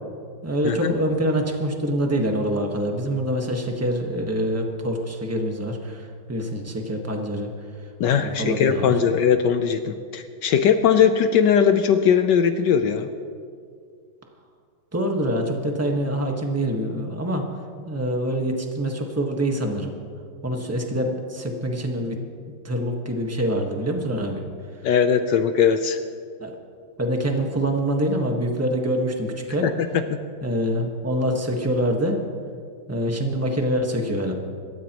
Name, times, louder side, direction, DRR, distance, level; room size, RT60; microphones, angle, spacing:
voice 1, 0.4-7.5 8.2-8.9 14.9-17.4 17.9-19.9 20.4-22.2 22.6-24.4 26.4-26.5 27.0-29.7 30.4-32.2 32.9-34.3, equal, 10° right, 2 dB, 1.0 m, -25 dB
voice 2, 8.0-13.1 24.8-26.0 29.6-29.7, left 7 dB, 70° left, 8 dB, 1.2 m, -19 dB
26.5 x 13.5 x 3.0 m, 2.2 s
omnidirectional pair, 2.3 m